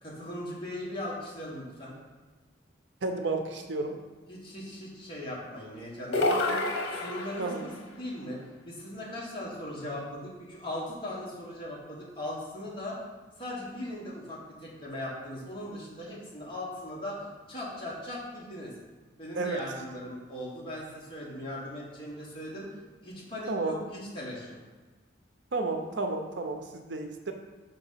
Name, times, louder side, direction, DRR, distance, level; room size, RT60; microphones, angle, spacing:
voice 1, 0.0-2.0 4.3-13.0 13.4-18.7 19.2-24.6, left 1 dB, 25° left, -6 dB, 1.7 m, -39 dB
voice 2, 3.0-3.9 7.4-7.6 19.4-19.6 23.5-23.8 25.5-27.3, right 3 dB, 70° right, 5 dB, 0.6 m, -31 dB
sound 1, 6.1-7.7, left 2 dB, 85° left, 0.9 m, -28 dB
5.2 x 4.0 x 5.7 m, 1.3 s
head